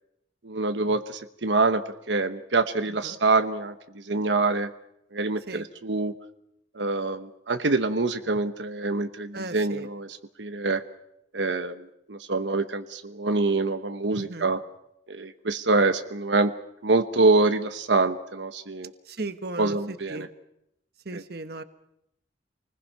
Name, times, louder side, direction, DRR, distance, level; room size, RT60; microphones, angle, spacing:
voice 1, 0.4-4.7 5.1-6.1 6.7-10.8 11.3-14.6 15.1-16.5 16.8-18.9 19.6-20.3 21.1-21.2, right 3 dB, 85° right, 8 dB, 1.1 m, -25 dB
voice 2, 9.3-9.9 14.1-14.5 19.1-20.3 21.0-21.6, right 2 dB, 60° right, 9 dB, 1.3 m, -36 dB
28.0 x 20.5 x 5.8 m, 0.80 s
head